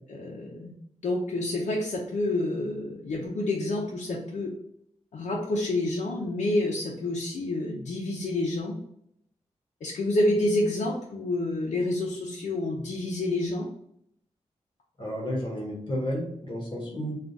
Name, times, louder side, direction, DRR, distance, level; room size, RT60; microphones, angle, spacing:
voice 1, 0.1-0.7 1.0-4.5 5.1-8.8 9.8-13.7, left 1 dB, 75° left, -3 dB, 0.6 m, -28 dB
voice 2, 15.0-17.1, equal, 40° left, -3 dB, 1.3 m, -32 dB
3.6 x 2.4 x 3.9 m, 0.73 s
wide cardioid pair, 120°, 12 cm